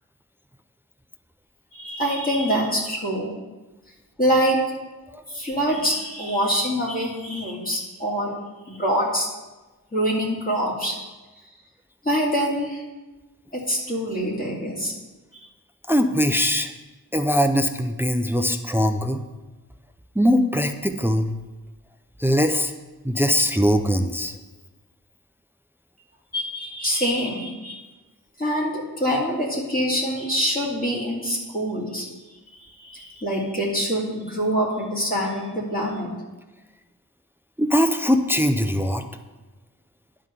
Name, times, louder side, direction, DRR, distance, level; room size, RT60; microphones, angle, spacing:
voice 1, 1.7-3.3 4.2-4.6 5.3-8.3 8.7-9.3 9.9-11.0 12.0-12.8 13.5-14.9 15.3-15.5 26.3-27.8 28.4-32.1 32.5-36.1, equal, 25° left, -5 dB, 2.4 m, -25 dB
voice 2, 15.9-16.7 17.1-19.2 20.2-21.3 22.2-22.7 23.0-24.4 37.6-39.1, equal, 5° right, 8 dB, 0.4 m, -21 dB
10.5 x 3.8 x 6.4 m, 1.2 s
wide cardioid pair, 100°, 37 cm